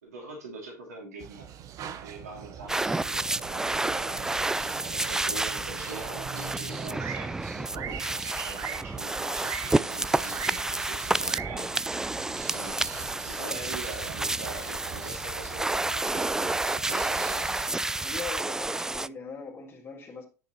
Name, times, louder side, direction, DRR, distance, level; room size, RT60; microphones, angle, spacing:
voice 1, 0.0-1.5 1.8-4.4 4.8-11.7 12.4-12.8 13.2-17.6, right 3 dB, 75° right, 2.9 m, -43 dB
sound 1, 1.2-17.7, right 9 dB, 40° right, 1.0 m, -42 dB
sound 2, 2.7-19.1, right 2 dB, 5° right, 0.3 m, -30 dB
voice 2, 18.0-20.3, left 5 dB, 30° left, 2.9 m, -40 dB
10.5 x 6.8 x 3.1 m
figure-of-eight pair, 80°, 9 cm